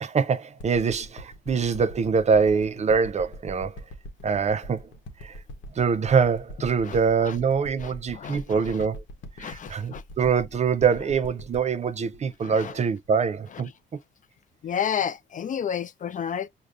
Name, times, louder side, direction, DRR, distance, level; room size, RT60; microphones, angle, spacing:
voice 1, 0.0-3.8 4.2-4.9 5.2-5.4 5.7-9.0 9.4-13.7, right 6 dB, 35° right, 0.4 m, -24 dB
sound 1, 0.6-13.4 13.9-14.0, equal, 70° left, 1.0 m, -42 dB
voice 2, 7.8-8.6 9.4-10.0 12.4-12.7 14.6-16.5, left 8 dB, 40° left, 0.4 m, -31 dB
6.4 x 2.2 x 2.3 m
cardioid pair, 90°, 20 cm